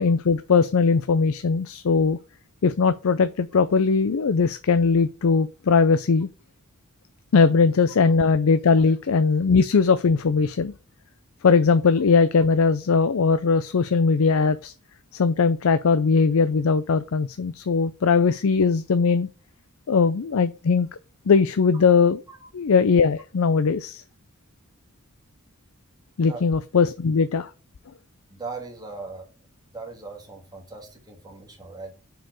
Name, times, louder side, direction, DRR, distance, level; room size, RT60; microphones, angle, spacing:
voice 1, 0.0-2.2 2.6-6.3 7.3-10.7 11.4-14.7 15.1-19.3 19.9-20.9 21.3-22.2 22.5-24.0 26.2-27.5, left 5 dB, 70° left, 0.5 m, -20 dB
voice 2, 28.3-29.3 29.7-31.9, right 3 dB, 20° right, 2.0 m, -39 dB
6.0 x 4.8 x 4.8 m
head